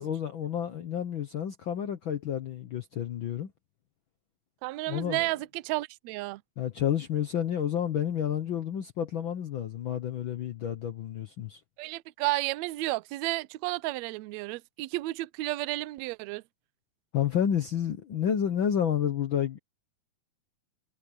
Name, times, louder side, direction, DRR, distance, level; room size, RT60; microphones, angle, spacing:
voice 1, 0.0-3.5 4.9-5.3 6.6-11.6 17.1-19.6, left 9 dB, 75° left, 1.1 m, -30 dB
voice 2, 4.6-6.4 11.8-16.4, right 19 dB, 80° right, 1.6 m, -32 dB
omnidirectional pair, 3.6 m